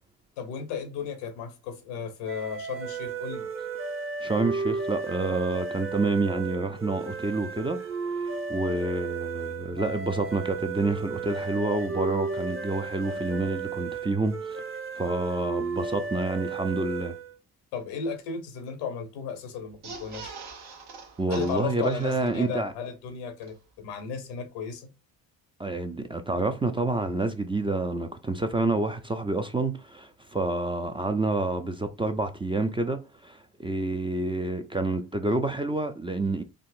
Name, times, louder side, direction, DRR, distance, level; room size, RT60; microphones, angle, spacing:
voice 1, 0.4-3.5 17.7-20.3 21.3-24.9, left 6 dB, 85° left, 0.8 m, -35 dB
sound 1, 2.3-17.3, right 4 dB, 30° right, 0.8 m, -34 dB
voice 2, 4.2-7.8 8.0-14.6 15.0-17.1 21.2-22.7 25.6-36.4, right 2 dB, 15° right, 0.4 m, -28 dB
sound 2, 19.7-22.7 23.1-23.2 23.4-23.5, right 4 dB, 65° right, 0.9 m, -43 dB
3.6 x 2.0 x 2.4 m
hypercardioid pair, 55°, 43 cm